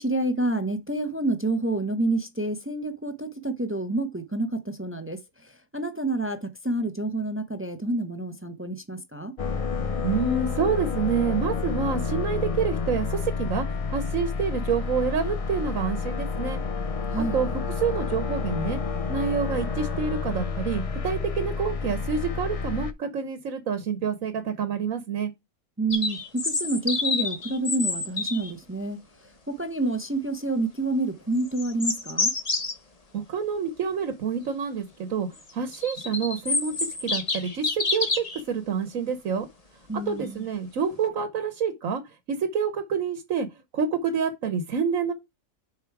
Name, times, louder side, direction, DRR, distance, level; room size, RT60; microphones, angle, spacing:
voice 1, 0.0-9.3 17.1-17.4 25.8-29.0 29.5-32.3 39.9-40.5, right 2 dB, 15° right, 0.5 m, -28 dB
sound 1, 9.4-22.9, left 4 dB, 55° left, 0.3 m, -29 dB
voice 2, 10.0-13.6 13.9-16.6 17.2-18.8 19.1-25.3 33.1-35.3 35.5-37.7 37.9-39.5 40.1-42.0 42.3-43.5 43.7-45.1, right 6 dB, 70° right, 1.3 m, -28 dB
sound 2, 25.9-28.5 31.4-32.7 35.5-38.4, left 3 dB, 30° left, 1.1 m, -28 dB
6.9 x 4.5 x 4.6 m
omnidirectional pair, 1.4 m